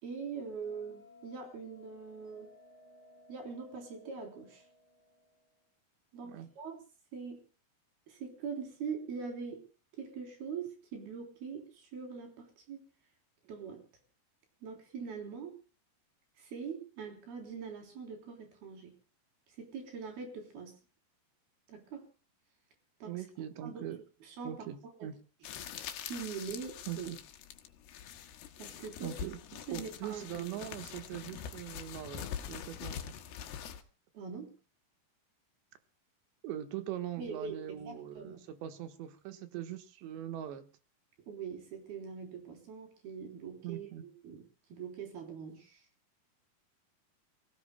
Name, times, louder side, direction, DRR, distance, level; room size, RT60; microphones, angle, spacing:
voice 1, 0.0-2.5 3.3-4.6 6.1-6.8 7.1-7.4 8.1-9.7 10.0-12.8 13.5-13.9 14.6-15.6 16.4-19.0 19.6-20.8 21.7-22.1 23.0-23.2 23.6-23.8 24.2-24.7 25.0-25.1 26.1-27.1 28.6-29.2 29.7-30.5 34.1-34.6 37.2-38.4 41.3-45.9, right 6 dB, 60° right, 4 dB, 5.4 m, -43 dB
Bell, 0.6-5.7, left 2 dB, 30° right, 7.6 m, -60 dB
voice 2, 23.1-24.0 24.4-25.2 26.9-27.2 29.0-29.4 29.7-33.2 36.4-40.7 43.6-44.0, right 11 dB, 80° right, 8 dB, 3.6 m, -41 dB
sound 1, 25.4-33.8, left 9 dB, 75° left, 3.1 m, -44 dB
28.5 x 17.0 x 2.2 m, 0.33 s
omnidirectional pair, 5.0 m